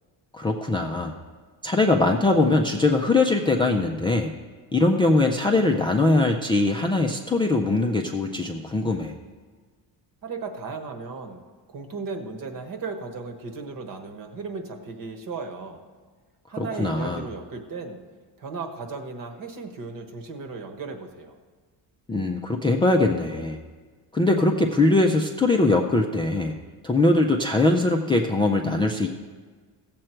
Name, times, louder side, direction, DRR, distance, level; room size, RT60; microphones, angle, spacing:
voice 1, 0.3-1.2 1.6-4.3 4.7-9.1 16.6-17.3 22.1-23.6 24.1-26.6 26.8-29.1, left 2 dB, 15° left, 1 dB, 0.3 m, -21 dB
voice 2, 10.2-11.4 11.7-15.8 16.5-18.0 18.4-21.4, right 4 dB, 50° right, 5 dB, 1.3 m, -35 dB
16.0 x 7.6 x 4.5 m, 1.5 s
cardioid pair, 170°, 43 cm